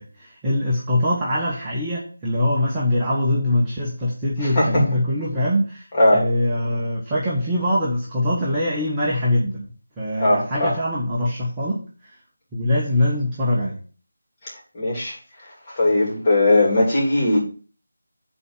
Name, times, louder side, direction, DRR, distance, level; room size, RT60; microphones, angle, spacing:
voice 1, 0.0-5.8 6.1-9.6 10.0-11.8 12.5-13.8, left 1 dB, 10° right, -7 dB, 1.2 m, -23 dB
voice 2, 4.4-5.0 5.9-6.3 10.2-10.8 14.7-15.1 15.8-17.4, left 1 dB, 20° left, -5 dB, 3.3 m, -19 dB
8.8 x 4.2 x 6.5 m, 0.39 s
figure-of-eight pair, 170°, 0 cm